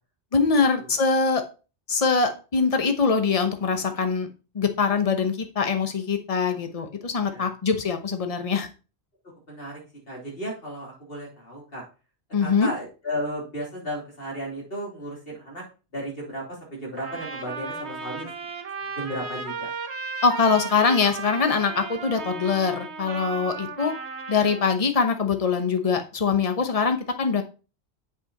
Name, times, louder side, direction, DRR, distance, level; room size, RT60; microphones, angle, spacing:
voice 1, 0.3-1.4 1.9-4.3 4.5-8.7 12.3-12.7 20.2-23.9 24.3-27.4, left 5 dB, 35° left, 6 dB, 1.0 m, -23 dB
voice 2, 9.5-9.8 10.1-11.8 12.4-15.6 15.9-18.3 19.0-19.7, equal, 55° left, -3 dB, 3.6 m, -34 dB
Trumpet, 17.0-24.7, right 4 dB, 75° right, 1.4 m, -35 dB
8.2 x 5.7 x 4.1 m, 0.34 s
omnidirectional pair, 1.1 m